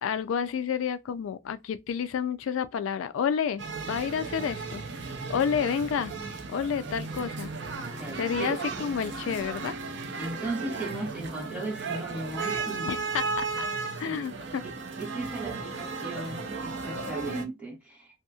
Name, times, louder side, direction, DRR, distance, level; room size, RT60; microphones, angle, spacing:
voice 1, 0.0-4.8 5.3-6.1 6.5-7.5 8.2-9.7 12.8-13.7 14.0-14.6, left 7 dB, 70° left, 0.3 m, -30 dB
sound 1, 3.6-17.4, right 4 dB, 55° right, 0.5 m, -35 dB
voice 2, 8.0-8.6 10.2-12.9 14.0-14.2 14.6-18.1, right 2 dB, 5° right, 1.1 m, -37 dB
2.8 x 2.7 x 2.3 m
head